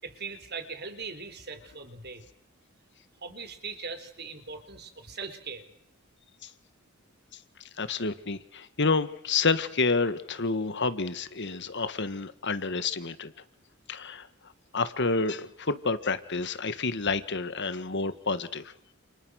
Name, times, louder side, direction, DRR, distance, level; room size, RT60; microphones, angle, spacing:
voice 1, 0.0-2.2 3.2-5.7, right 4 dB, 50° right, 9 dB, 4.3 m, -40 dB
voice 2, 7.8-13.3 13.9-14.3 14.7-18.7, left 4 dB, 55° left, 12 dB, 1.8 m, -29 dB
30.0 x 29.5 x 6.5 m, 0.66 s
head